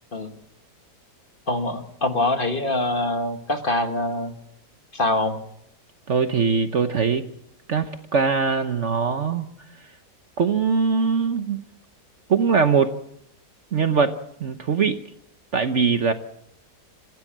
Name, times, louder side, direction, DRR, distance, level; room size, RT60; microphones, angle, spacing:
voice 1, 1.5-4.3 4.9-5.4, left 2 dB, 35° left, 7 dB, 1.5 m, -24 dB
voice 2, 6.1-7.2 7.7-9.5 10.4-11.6 12.3-12.9 13.7-15.0 15.5-16.1, right 5 dB, 50° right, 9 dB, 1.1 m, -21 dB
27.0 x 15.5 x 7.4 m, 0.74 s
omnidirectional pair, 1.8 m